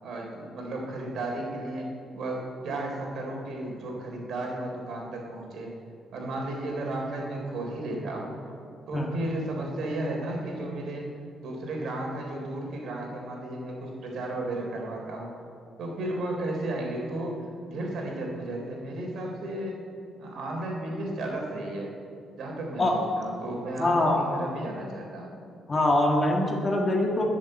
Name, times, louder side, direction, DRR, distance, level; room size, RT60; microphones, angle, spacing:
voice 1, 0.0-5.7 6.1-8.4 8.9-11.1 11.4-15.3 15.8-19.8 20.2-21.9 22.4-25.3, right 1 dB, 60° right, 0 dB, 3.6 m, -34 dB
voice 2, 23.8-24.2 25.7-27.2, left 1 dB, 20° left, 0 dB, 1.7 m, -23 dB
21.5 x 7.4 x 7.8 m, 2.4 s
cardioid pair, 170°, 0 cm